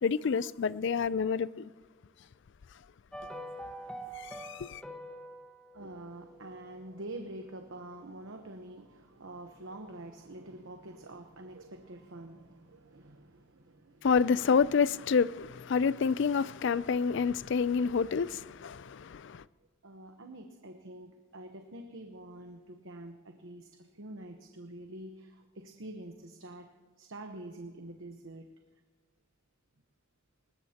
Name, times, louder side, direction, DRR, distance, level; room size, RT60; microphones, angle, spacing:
voice 1, 0.0-1.7 4.2-4.8 14.0-19.4, left 5 dB, 65° left, 0.4 m, -28 dB
sound 1, 3.1-7.4 7.7-7.8, right 1 dB, 5° left, 1.3 m, -46 dB
voice 2, 5.7-14.1 19.8-26.7 27.0-28.5, right 1 dB, 75° right, 1.0 m, -46 dB
20.5 x 20.0 x 2.9 m
head